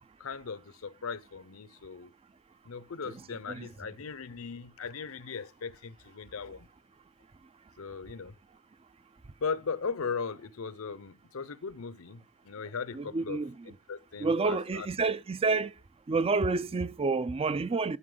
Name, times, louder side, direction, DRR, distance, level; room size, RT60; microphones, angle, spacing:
voice 1, 0.2-2.1 2.6-6.7 7.8-8.3 9.4-13.4 13.7-14.9, left 5 dB, 75° left, 0.7 m, -38 dB
voice 2, 3.1-3.7 12.9-13.6 14.2-15.7 16.1-18.0, right 4 dB, 25° right, 0.4 m, -29 dB
11.0 x 5.6 x 3.8 m
head